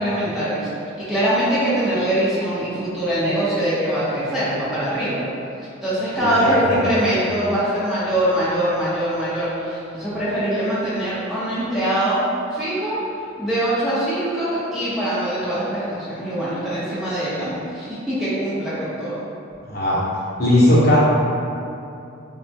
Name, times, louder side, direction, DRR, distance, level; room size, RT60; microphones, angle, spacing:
voice 1, 0.0-5.2 5.8-12.2 12.5-13.0 13.4-19.2, right 1 dB, ahead, -12 dB, 0.6 m, -23 dB
voice 2, 6.2-6.8 19.6-20.0 20.4-21.0, left 1 dB, 50° left, -8 dB, 0.8 m, -17 dB
4.1 x 2.2 x 2.8 m, 2.6 s
head